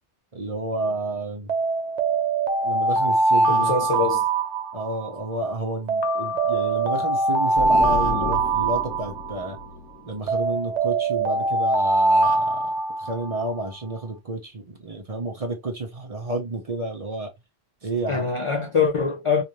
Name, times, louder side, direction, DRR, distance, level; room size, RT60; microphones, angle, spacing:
voice 1, 0.3-1.5 2.6-4.1 4.7-9.6 10.0-17.3 17.8-18.3, right 2 dB, 35° right, 0.7 m, -30 dB
Alarm, 1.5-5.2 5.9-9.6 10.3-13.5, right 3 dB, 90° right, 1.0 m, -23 dB
voice 2, 3.5-4.2 18.1-19.4, left 5 dB, 55° left, 0.3 m, -23 dB
Piano, 6.0-8.2, left 13 dB, 75° left, 0.9 m, -36 dB
sound 1, 7.6-11.2, left 1 dB, 35° left, 0.9 m, -34 dB
2.5 x 2.5 x 2.9 m
omnidirectional pair, 1.2 m